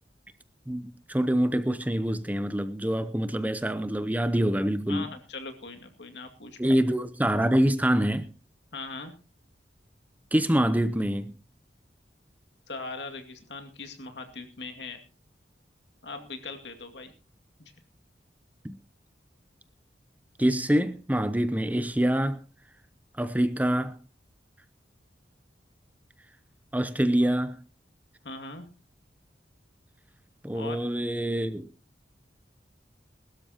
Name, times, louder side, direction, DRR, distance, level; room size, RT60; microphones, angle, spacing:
voice 1, 0.7-5.1 6.6-8.3 10.3-11.3 18.6-18.8 20.4-22.4 23.2-24.0 26.7-27.6 30.4-31.7, right 1 dB, 10° right, 0.6 m, -25 dB
voice 2, 4.9-6.6 8.7-9.1 12.7-15.0 16.0-17.1 17.6-17.7 28.2-28.7 30.5-30.9, left 3 dB, 80° left, 2.3 m, -40 dB
21.5 x 12.5 x 2.9 m
head